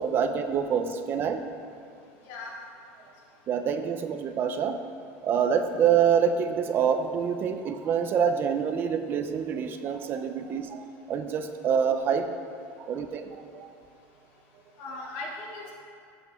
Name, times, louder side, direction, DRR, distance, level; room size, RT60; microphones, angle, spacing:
voice 1, 0.0-1.4 3.5-4.9 5.2-12.3 12.7-13.7, right 7 dB, 30° right, 8 dB, 0.5 m, -26 dB
voice 2, 2.2-2.5 10.1-10.2 14.8-15.7, left 2 dB, 70° left, -4 dB, 2.6 m, -38 dB
14.5 x 7.0 x 3.6 m, 2.5 s
cardioid pair, 170°, 7 cm